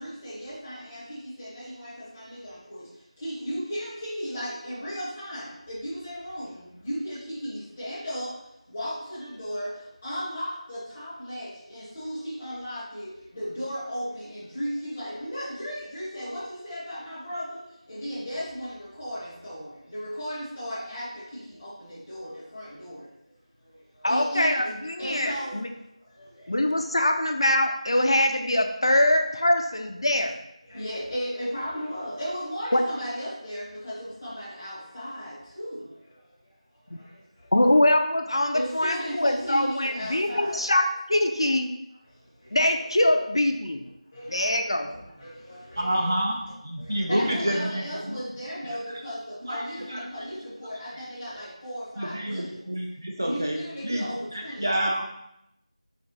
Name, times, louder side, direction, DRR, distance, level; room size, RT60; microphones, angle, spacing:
voice 1, 0.0-2.9 3.2-8.3 8.7-9.7 10.0-17.6 17.9-23.0 24.1-24.7 25.0-25.6 26.2-26.3 29.0-29.1 30.7-35.8 38.5-40.7 42.6-42.7 43.1-43.2 44.1-44.6 45.2-46.1 46.4-52.6 53.2-55.0, equal, 10° left, -10 dB, 0.6 m, -35 dB
voice 2, 24.0-25.7 26.5-30.4 32.7-32.8 37.5-41.7 42.5-43.8 44.3-44.9, left 1 dB, 50° left, 5 dB, 0.3 m, -23 dB
voice 3, 45.8-48.2 49.5-49.6 49.9-50.0 52.0-54.1 54.3-55.0, right 1 dB, 30° right, 0 dB, 0.3 m, -28 dB
3.9 x 3.6 x 2.9 m, 0.83 s
figure-of-eight pair, 180°, 4 cm